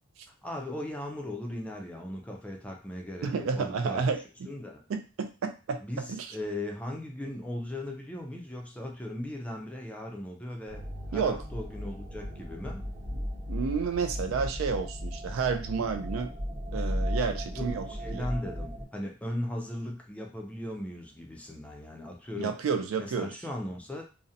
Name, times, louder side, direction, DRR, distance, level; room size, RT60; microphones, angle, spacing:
voice 1, 0.3-4.0 4.5-4.8 5.8-12.8 17.5-22.5 23.0-24.0, left 1 dB, 5° left, 1 dB, 0.4 m, -38 dB
voice 2, 3.2-4.2 4.9-5.8 6.1-6.3 11.1-11.4 13.5-16.3 16.7-17.9 18.1-18.3 22.4-23.3, right 5 dB, 70° right, 8 dB, 0.3 m, -30 dB
sound 1, 10.7-18.9, equal, 35° right, 0.9 m, -35 dB
2.5 x 2.0 x 2.7 m, 0.33 s
head